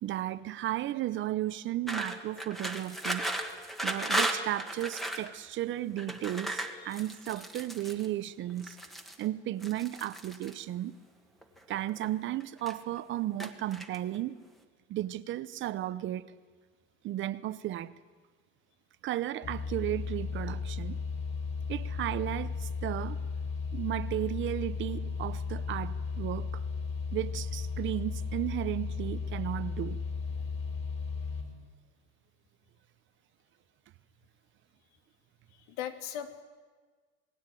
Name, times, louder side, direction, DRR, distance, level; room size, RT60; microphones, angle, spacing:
voice 1, 0.0-3.2 3.8-8.8 9.2-11.0 11.7-14.4 14.9-16.3 17.0-17.9 19.0-21.0 21.7-23.2 23.7-26.6 27.1-30.0, right 14 dB, 40° right, 0.8 m, -34 dB
sound 1, 1.9-5.3 6.0-8.1 8.6-9.2 9.6-10.5 11.4-12.1 12.4-13.0 13.4-14.2, right 1 dB, ahead, 1.6 m, -35 dB
sound 2, 19.4-31.4, left 5 dB, 35° left, 5.1 m, -35 dB
voice 2, 35.5-36.4, left 10 dB, 85° left, 2.9 m, -39 dB
27.5 x 20.5 x 9.2 m
cardioid pair, 170°, 31 cm